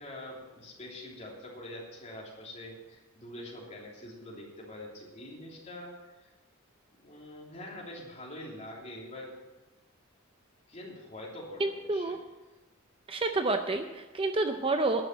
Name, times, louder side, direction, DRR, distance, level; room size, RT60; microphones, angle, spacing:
voice 1, 0.0-6.3 7.0-9.4 10.7-12.2, left 1 dB, 30° left, -4 dB, 3.1 m, -45 dB
voice 2, 11.6-12.2 13.1-15.0, right 2 dB, 25° right, 6 dB, 0.5 m, -29 dB
11.0 x 6.5 x 9.0 m, 1.1 s
head